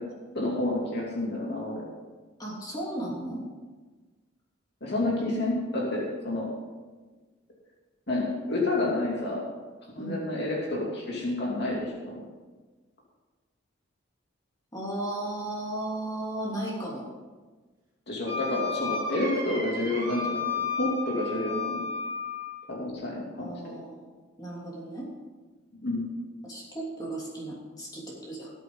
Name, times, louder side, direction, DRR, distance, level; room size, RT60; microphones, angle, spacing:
voice 1, 0.3-1.8 4.8-6.5 8.1-9.4 10.0-12.2 18.1-20.4 20.8-21.8 22.7-23.8 25.8-26.1, left 2 dB, 55° left, -3 dB, 2.8 m, -29 dB
voice 2, 2.4-3.4 10.0-10.3 14.7-17.1 23.4-24.1 24.4-25.1 26.4-28.5, right 1 dB, 20° left, -4 dB, 3.0 m, -35 dB
Wind instrument woodwind instrument, 18.2-22.6, left 5 dB, 15° right, 3.8 m, -33 dB
19.0 x 8.2 x 3.9 m, 1.3 s
head